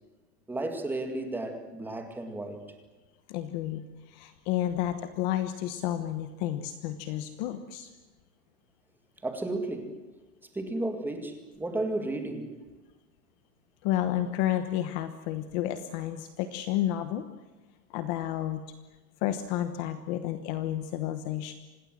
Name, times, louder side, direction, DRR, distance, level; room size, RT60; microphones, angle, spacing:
voice 1, 0.5-2.6 9.2-10.0 10.5-12.6, right 2 dB, 5° right, 5 dB, 2.1 m, -33 dB
voice 2, 3.3-7.9 13.8-17.3 17.9-18.6 19.2-21.5, left 12 dB, 30° left, 10 dB, 1.1 m, -31 dB
27.0 x 19.5 x 7.7 m, 1.2 s
supercardioid pair, 170°, 46 cm